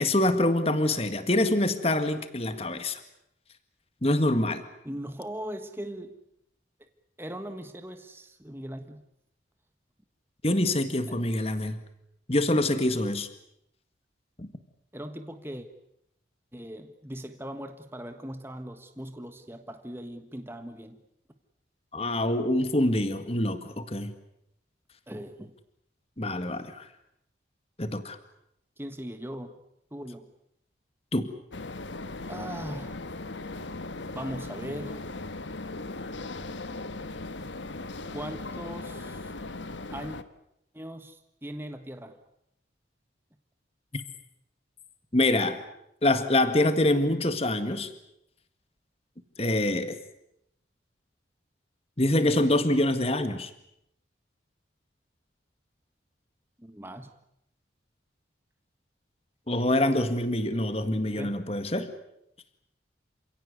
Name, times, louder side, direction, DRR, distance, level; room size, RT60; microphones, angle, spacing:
voice 1, 0.0-3.0 4.0-4.6 10.4-11.8 12.3-13.3 14.4-14.5 21.9-24.1 26.2-26.9 27.8-28.2 31.1-31.3 45.1-45.6 46.0-47.9 49.4-50.0 52.0-53.5 59.5-61.9, left 1 dB, 30° left, 10 dB, 1.8 m, -25 dB
voice 2, 4.8-6.2 6.8-6.9 7.2-9.0 11.1-11.2 14.9-15.7 16.5-21.0 25.1-25.6 28.8-29.6 29.9-30.3 32.2-33.0 34.1-35.1 38.1-39.3 39.9-40.2 40.7-42.2 56.6-57.1 61.1-61.3, right 1 dB, 10° right, 7 dB, 1.4 m, -39 dB
sound 1, 31.5-40.2, left 2 dB, 80° left, 1.4 m, -38 dB
28.5 x 17.0 x 9.6 m, 0.78 s
head